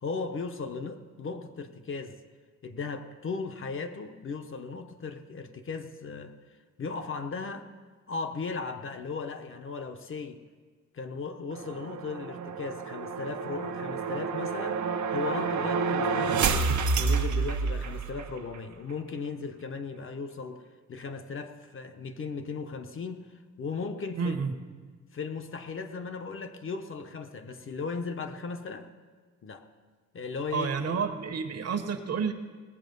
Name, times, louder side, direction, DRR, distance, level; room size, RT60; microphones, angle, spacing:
voice 1, 0.0-2.2 2.6-6.4 6.8-7.7 8.1-10.4 10.9-20.6 20.9-24.4 25.1-28.9 29.4-29.6 30.1-31.0, left 4 dB, 45° left, 7 dB, 0.9 m, -37 dB
sound 1, 11.5-18.3, right 5 dB, 80° right, 0.9 m, -29 dB
voice 2, 24.1-24.5 30.5-32.3, right 6 dB, 60° right, 7 dB, 1.2 m, -30 dB
19.0 x 7.2 x 5.4 m, 1.5 s
wide cardioid pair, 130°, 29 cm